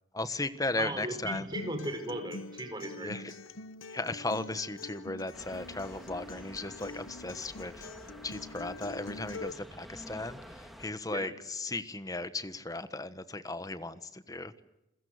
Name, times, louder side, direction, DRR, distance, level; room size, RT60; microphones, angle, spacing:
voice 1, 0.1-1.4 3.0-3.2 3.9-7.9 8.2-10.4 10.8-14.5, left 2 dB, 20° left, 12 dB, 1.3 m, -36 dB
voice 2, 0.8-3.4 11.1-11.3, right 1 dB, 20° right, 7 dB, 5.0 m, -37 dB
Acoustic guitar, 1.5-9.5, left 3 dB, 85° left, 1.1 m, -45 dB
sound 1, 5.3-10.9, equal, ahead, 2.4 m, -49 dB
29.5 x 21.5 x 8.0 m, 0.91 s
head